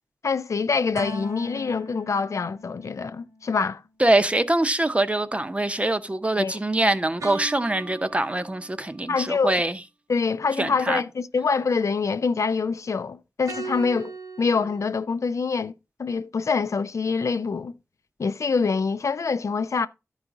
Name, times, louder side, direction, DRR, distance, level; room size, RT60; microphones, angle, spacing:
voice 1, 0.2-3.8 6.4-6.6 9.1-9.6 10.1-14.1 14.4-15.7 16.0-17.7 18.2-19.9, left 5 dB, 70° left, 0.6 m, -25 dB
sound 1, 0.9-3.5 7.2-9.0 13.5-14.9, right 2 dB, 85° right, 2.2 m, -38 dB
voice 2, 4.0-9.8 10.6-11.0, right 1 dB, 25° right, 0.8 m, -23 dB
12.5 x 4.9 x 3.8 m
wide cardioid pair, 75°, 5 cm